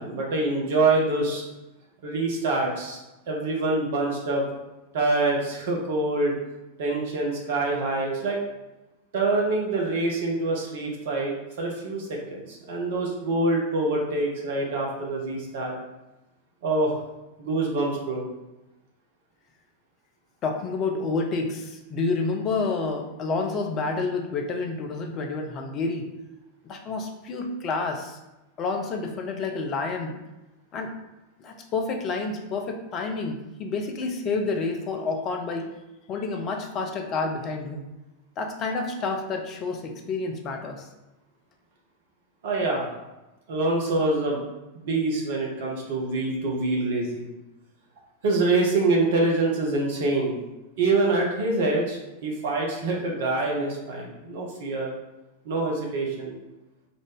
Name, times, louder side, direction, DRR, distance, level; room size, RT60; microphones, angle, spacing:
voice 1, 0.0-1.4 2.0-3.0 3.3-4.4 4.9-6.3 6.8-8.4 9.1-15.7 16.6-16.9 17.4-18.2 42.4-42.9 43.5-44.4 44.7-47.3 48.2-50.4 50.8-54.9 55.4-56.3, right 2 dB, 55° right, -1 dB, 1.0 m, -25 dB
voice 2, 20.4-26.1 26.6-28.2 28.6-30.1 30.7-30.9 31.4-35.7 36.1-37.9 38.4-40.9, left 3 dB, 35° left, 3 dB, 0.6 m, -29 dB
3.9 x 2.5 x 3.6 m, 1.0 s
figure-of-eight pair, 90°, 0 cm